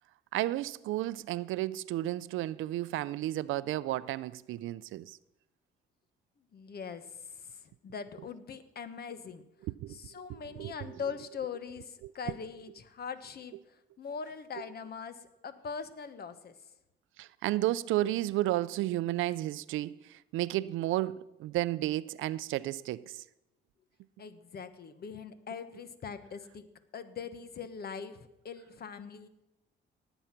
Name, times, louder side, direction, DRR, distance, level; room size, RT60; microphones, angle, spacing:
voice 1, 0.3-5.2 9.6-10.0 10.3-11.0 12.0-12.1 17.2-23.2, right 15 dB, 85° right, 0.5 m, -32 dB
voice 2, 6.5-9.5 9.9-16.5 24.2-26.7 26.9-29.3, left 6 dB, 50° left, 1.2 m, -42 dB
18.5 x 7.9 x 5.9 m
cardioid pair, 90°, 20 cm